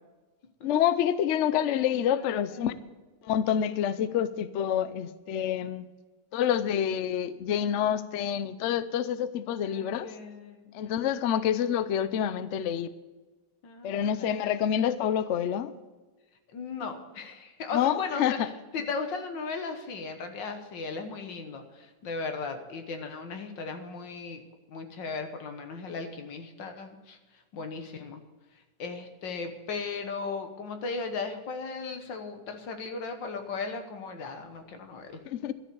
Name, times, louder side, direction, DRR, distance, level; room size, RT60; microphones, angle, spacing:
voice 1, 0.6-2.7 3.2-5.9 6.3-10.1 10.7-12.9 13.8-15.7 17.7-18.5 35.3-35.5, left 9 dB, 65° left, 0.7 m, -27 dB
voice 2, 2.2-2.7 9.7-11.0 13.6-14.4 16.5-24.4 24.7-27.2 27.5-28.2 28.8-35.2, left 4 dB, 90° left, 2.0 m, -37 dB
12.5 x 7.0 x 8.5 m
omnidirectional pair, 1.9 m